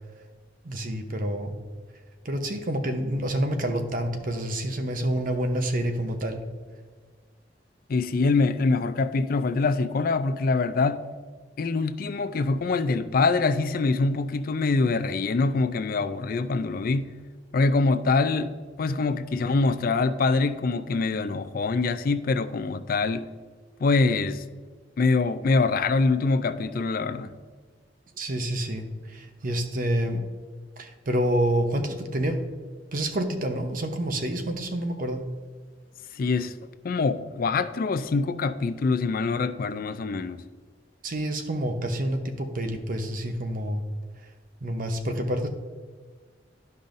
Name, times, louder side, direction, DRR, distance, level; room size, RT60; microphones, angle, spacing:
voice 1, 0.6-1.6 2.2-6.4 28.2-30.2 30.8-32.4 32.9-35.2 41.0-43.8 44.6-45.5, right 1 dB, 50° right, 0.8 m, -28 dB
voice 2, 7.9-11.0 11.6-17.1 17.5-18.5 18.8-23.3 23.8-24.4 25.0-27.3 36.2-36.5 36.8-40.4, left 3 dB, 55° left, 0.4 m, -24 dB
11.5 x 5.4 x 2.6 m
head